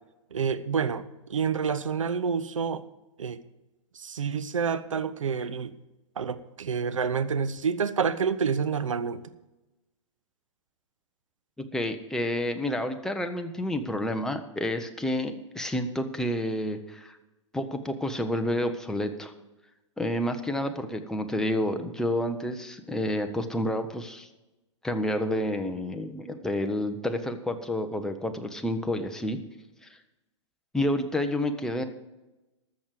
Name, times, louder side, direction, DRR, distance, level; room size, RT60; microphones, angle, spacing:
voice 1, 0.3-1.0 1.3-2.8 3.2-3.4 4.0-5.7 6.2-9.2, right 6 dB, 85° right, 12 dB, 0.9 m, -28 dB
voice 2, 11.6-17.2 17.5-19.3 20.0-24.3 24.8-29.4 29.8-29.9 30.7-31.8, left 1 dB, 5° left, 6 dB, 1.1 m, -29 dB
13.5 x 6.6 x 7.7 m, 1.0 s
hypercardioid pair, 115°, 16 cm